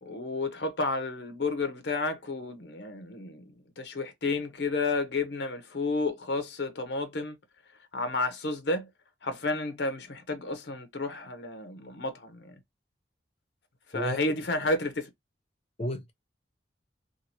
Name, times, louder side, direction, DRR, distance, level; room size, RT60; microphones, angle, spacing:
voice 1, 0.0-3.4 3.8-7.4 7.9-8.9 9.2-12.5 13.9-15.1, left 3 dB, 70° left, 0.7 m, -31 dB
voice 2, 13.9-14.4 15.8-16.1, left 1 dB, 35° left, 0.7 m, -34 dB
2.6 x 2.5 x 2.8 m
head